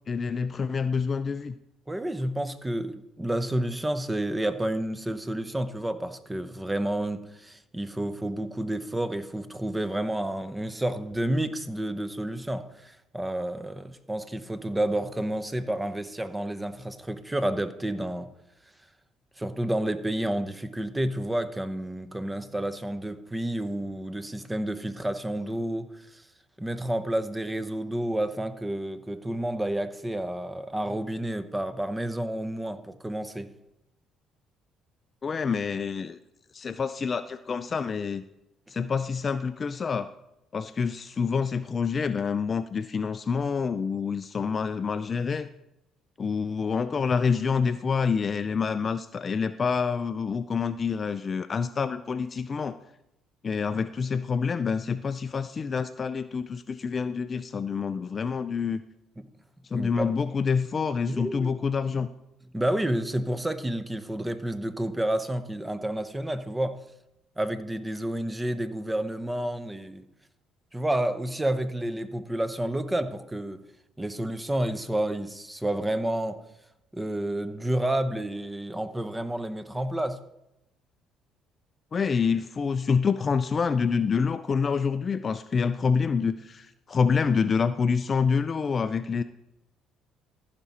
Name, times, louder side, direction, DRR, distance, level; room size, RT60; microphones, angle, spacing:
voice 1, 0.1-1.5 35.2-36.2 36.5-38.2 38.7-40.1 40.5-45.5 46.2-52.8 53.4-58.8 59.7-62.1 81.9-89.2, left 5 dB, 40° left, 0.4 m, -27 dB
voice 2, 1.9-18.3 19.4-26.3 26.6-33.5 59.2-59.3 59.7-60.1 61.1-61.5 62.5-66.8 67.4-70.0 70.7-73.6 74.0-76.4 76.9-80.2, right 1 dB, 10° right, 0.8 m, -30 dB
14.5 x 5.9 x 4.2 m
supercardioid pair, 80°, 0 cm